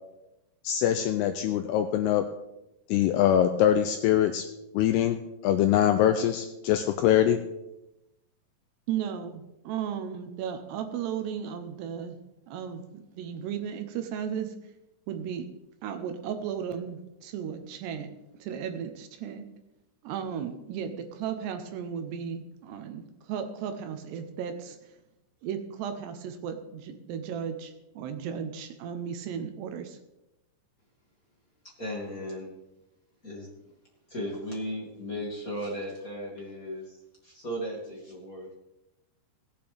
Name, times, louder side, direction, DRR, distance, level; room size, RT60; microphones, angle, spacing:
voice 1, 0.6-2.2 2.9-4.4 4.7-5.2 5.4-7.4, left 10 dB, 85° left, 6 dB, 2.3 m, -23 dB
voice 2, 8.9-12.2 12.5-14.5 15.1-15.5 15.8-18.1 18.4-19.5 20.0-24.8 25.4-30.0, right 8 dB, 75° right, 7 dB, 2.9 m, -35 dB
voice 3, 31.8-32.6 33.2-33.5 34.1-38.5, equal, 30° left, -4 dB, 1.8 m, -36 dB
18.0 x 9.0 x 3.5 m, 0.93 s
omnidirectional pair, 5.2 m